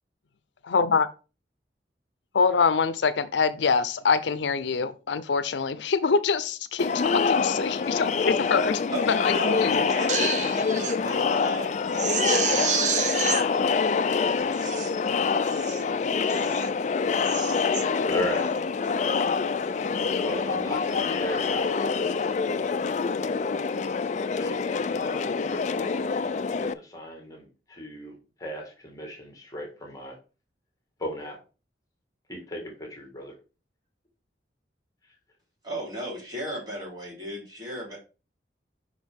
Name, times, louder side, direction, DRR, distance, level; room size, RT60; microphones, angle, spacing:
voice 1, 0.7-1.1 2.3-8.8 9.1-9.3 9.6-9.8, left 5 dB, 90° left, 0.6 m, -24 dB
Crowd, 6.8-26.7, left 5 dB, 40° left, 0.3 m, -26 dB
voice 2, 8.9-13.4 13.6-13.7 35.6-38.0, equal, 25° right, 3.5 m, -36 dB
Crying sobbing, 9.9-11.0 11.4-11.5 11.9-13.4 14.1-14.2 14.5-14.9 15.4-15.8 16.3-16.7 17.1-17.8 18.3-18.6, right 6 dB, 45° right, 0.8 m, -29 dB
voice 3, 18.0-18.5 20.2-22.2 24.3-26.1 26.5-30.2 31.0-31.4 32.3-33.3, equal, 20° left, 1.8 m, -37 dB
6.5 x 5.2 x 3.5 m
head